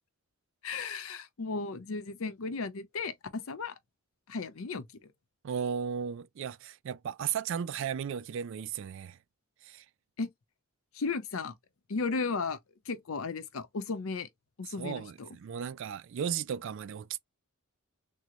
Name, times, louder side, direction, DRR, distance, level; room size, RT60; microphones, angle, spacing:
voice 1, 0.6-3.7 4.3-5.1 10.2-10.3 10.9-11.5 11.9-12.6 12.9-14.3 14.6-15.3, left 4 dB, 70° left, 0.6 m, -35 dB
voice 2, 5.4-9.2 9.6-9.8 14.8-17.2, right 8 dB, 60° right, 0.3 m, -35 dB
3.7 x 2.0 x 2.9 m
head